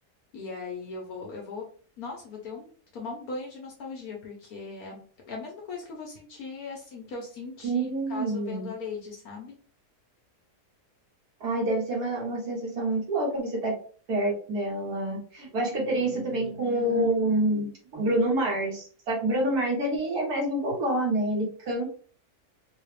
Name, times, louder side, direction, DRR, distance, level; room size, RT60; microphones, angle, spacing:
voice 1, 0.3-1.6 2.0-5.0 5.3-9.5, left 4 dB, 70° left, -1 dB, 1.3 m, -39 dB
voice 2, 7.6-8.7 11.4-13.7 14.1-21.9, right 1 dB, 75° right, -3 dB, 1.9 m, -27 dB
4.0 x 2.3 x 3.3 m, 0.42 s
omnidirectional pair, 1.7 m